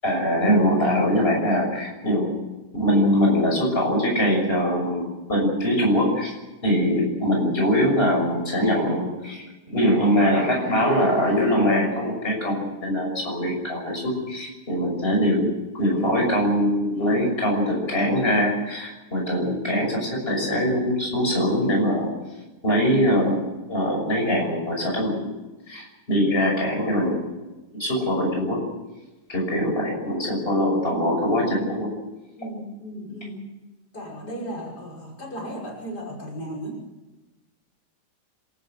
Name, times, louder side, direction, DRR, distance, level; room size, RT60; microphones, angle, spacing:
voice 1, 0.0-2.3 2.7-5.0 5.3-6.3 6.6-15.5 15.7-22.1 22.6-23.4 23.7-25.2 25.7-27.2 27.8-28.6 29.3-31.9, equal, 35° left, 0 dB, 6.9 m, -22 dB
voice 2, 32.4-33.4 33.9-36.8, equal, 80° left, -2 dB, 6.6 m, -35 dB
27.0 x 14.0 x 7.9 m, 1.1 s
omnidirectional pair, 1.7 m